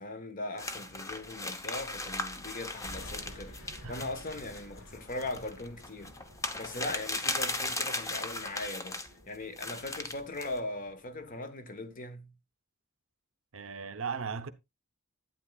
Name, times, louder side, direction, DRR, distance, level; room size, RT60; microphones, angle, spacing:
voice 1, 0.0-6.1 6.5-9.0 9.3-12.3, left 2 dB, 40° left, 1.3 m, -39 dB
sound 1, 0.6-9.1 9.6-10.6, left 2 dB, 15° left, 0.8 m, -37 dB
sound 2, 2.8-11.4, equal, 90° left, 3.0 m, -52 dB
voice 2, 3.8-4.4 13.5-14.5, right 5 dB, 75° right, 0.8 m, -38 dB
11.5 x 9.0 x 2.3 m
head